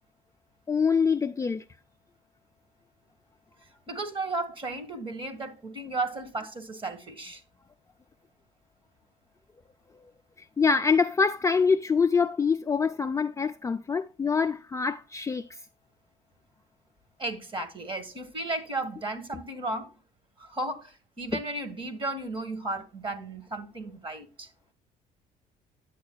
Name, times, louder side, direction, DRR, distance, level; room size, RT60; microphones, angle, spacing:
voice 1, 0.7-1.6 10.6-15.4, left 5 dB, 20° left, 0.4 m, -25 dB
voice 2, 3.9-7.4 17.2-19.9 20.4-24.5, right 2 dB, 30° right, 1.6 m, -34 dB
9.6 x 8.1 x 2.3 m
cardioid pair, 110°, 17 cm